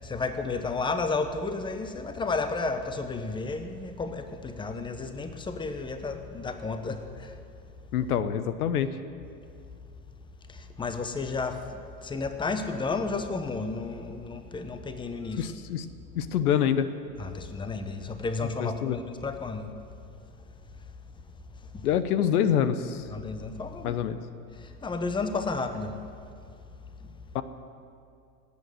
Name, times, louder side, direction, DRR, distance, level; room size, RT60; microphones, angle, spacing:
voice 1, 0.0-7.3 10.5-11.6 12.0-15.5 17.2-19.7 21.7-21.8 23.1-24.0 24.8-25.9, left 3 dB, 10° left, 8 dB, 1.0 m, -32 dB
voice 2, 7.9-9.0 15.4-15.9 16.1-16.9 18.6-19.0 21.8-23.1 23.8-24.2 27.3-27.4, left 9 dB, 70° left, 13 dB, 0.9 m, -26 dB
18.0 x 8.5 x 7.9 m, 2.4 s
hypercardioid pair, 95°, 47 cm